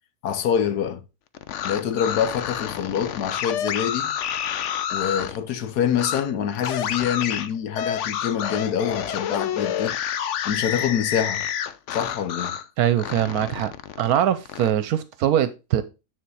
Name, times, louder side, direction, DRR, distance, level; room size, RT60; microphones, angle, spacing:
voice 1, 0.2-1.0 1.6-4.1 4.9-10.0 10.4-11.4 11.9-12.6, left 8 dB, 85° left, 1.4 m, -25 dB
sound 1, 1.3-5.4 5.9-6.2 6.6-12.7 13.0-14.7, left 9 dB, 60° left, 0.8 m, -29 dB
voice 2, 12.8-13.7 14.0-15.8, right 10 dB, 75° right, 1.1 m, -22 dB
9.3 x 4.2 x 4.7 m
omnidirectional pair, 1.6 m